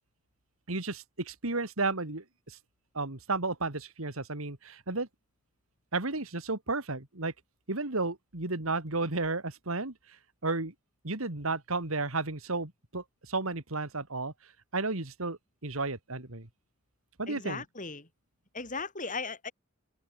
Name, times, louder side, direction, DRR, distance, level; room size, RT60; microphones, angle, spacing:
voice 1, 0.7-2.6 2.9-5.1 5.9-7.3 7.7-9.9 10.4-10.7 11.0-14.3 14.7-16.5 17.2-17.6, right 3 dB, 75° right, 2.6 m, -33 dB
voice 2, 17.3-18.1 18.5-19.5, left 4 dB, 35° left, 7.2 m, -37 dB
open air
head